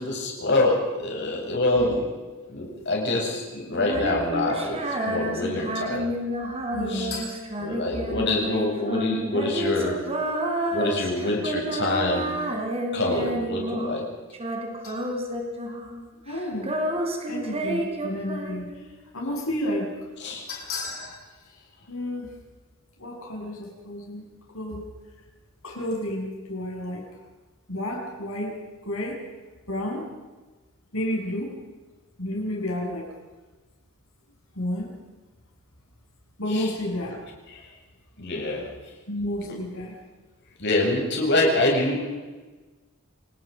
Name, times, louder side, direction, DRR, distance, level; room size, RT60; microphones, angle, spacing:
voice 1, 0.0-2.0 2.5-6.1 6.9-7.1 7.6-10.0 10.7-12.3 12.9-14.1 20.2-20.5 36.5-36.7 37.5-37.7 38.2-38.7 39.4-39.5 40.6-42.1, left 2 dB, 55° left, -1 dB, 7.6 m, -25 dB
Female singing, 3.7-14.1 14.3-16.0 16.3-18.9, right 1 dB, 30° right, 3.5 m, -30 dB
voice 2, 6.7-7.3 14.8-15.0 16.3-16.8 17.3-18.7 19.1-20.1 20.5-21.2 21.9-22.3 23.0-24.2 24.5-24.9 25.6-27.1 27.7-28.5 28.8-29.2 29.7-30.1 30.9-31.5 32.2-33.1 34.5-34.9 36.4-37.2 39.1-40.0, left 1 dB, 70° left, 0 dB, 7.7 m, -31 dB
28.5 x 19.5 x 5.3 m, 1.3 s
head